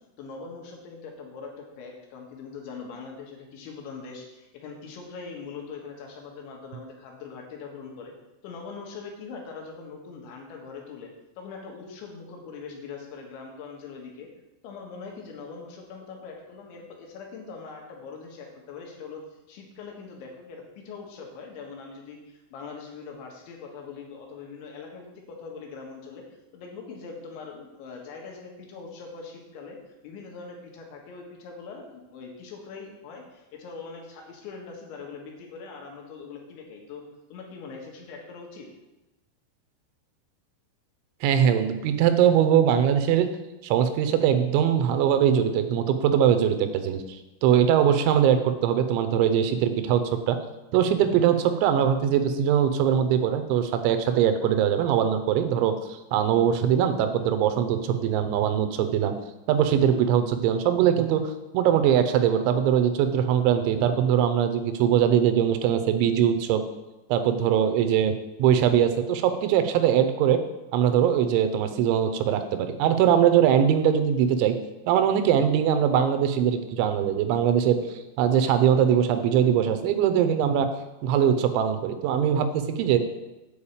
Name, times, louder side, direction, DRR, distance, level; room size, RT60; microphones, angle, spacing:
voice 1, 0.2-8.1 8.4-11.1 11.4-14.3 14.6-19.2 19.5-26.2 26.5-29.8 30.0-37.0 37.3-38.7, left 5 dB, 85° left, 0 dB, 3.8 m, -42 dB
voice 2, 41.2-43.3 43.6-50.0 50.3-50.4 50.7-59.1 59.5-61.2 61.5-66.6 67.1-70.4 70.7-74.6 74.9-77.8 78.2-80.7 81.0-83.0, right 9 dB, 90° right, 8 dB, 3.1 m, -22 dB
8.3 x 4.9 x 7.1 m, 1.0 s
omnidirectional pair, 5.2 m